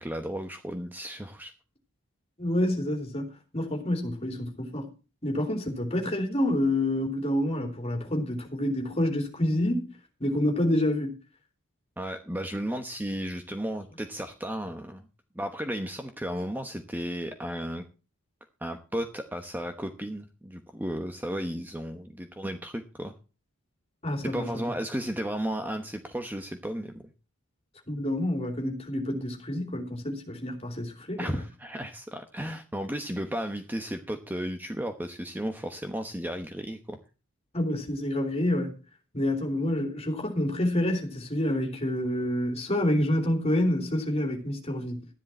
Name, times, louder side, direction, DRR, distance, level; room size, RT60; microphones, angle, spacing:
voice 1, 0.0-1.5 12.0-15.1 15.3-17.8 18.6-23.1 24.2-27.0 31.2-37.0, equal, 10° right, 1.0 m, -34 dB
voice 2, 2.4-4.9 5.2-9.9 10.2-11.1 24.0-24.6 27.9-31.4 37.5-38.7 39.1-45.1, left 1 dB, 30° left, 3.2 m, -28 dB
13.0 x 10.5 x 4.3 m
head